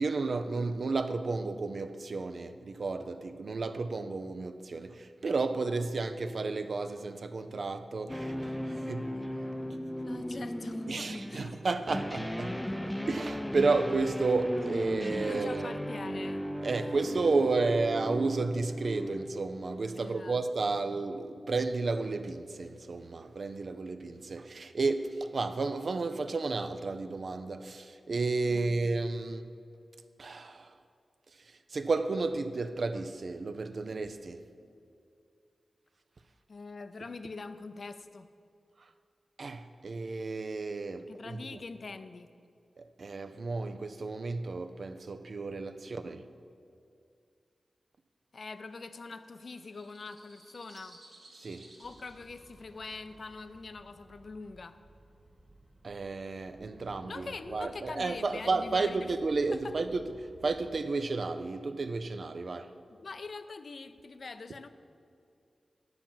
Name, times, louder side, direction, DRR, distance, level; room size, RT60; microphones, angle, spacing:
voice 1, 0.0-9.2 10.9-15.7 16.6-29.5 30.2-30.8 31.3-34.5 38.8-38.9 39.4-41.6 42.8-46.3 51.3-51.7 55.8-62.7, right 3 dB, 65° right, 0.5 m, -32 dB
sound 1, 8.1-20.0, equal, 10° left, 0.4 m, -36 dB
voice 2, 10.0-11.6 15.2-16.5 20.0-20.4 28.5-28.8 36.5-38.3 41.1-42.3 48.3-51.0 51.8-54.8 57.0-59.1 63.0-64.7, left 4 dB, 65° left, 0.5 m, -44 dB
sound 2, 48.5-53.6, right 2 dB, 85° right, 2.1 m, -58 dB
sound 3, 51.8-60.8, right 1 dB, 30° right, 2.0 m, -58 dB
10.0 x 5.8 x 7.3 m
cardioid pair, 50°, 0 cm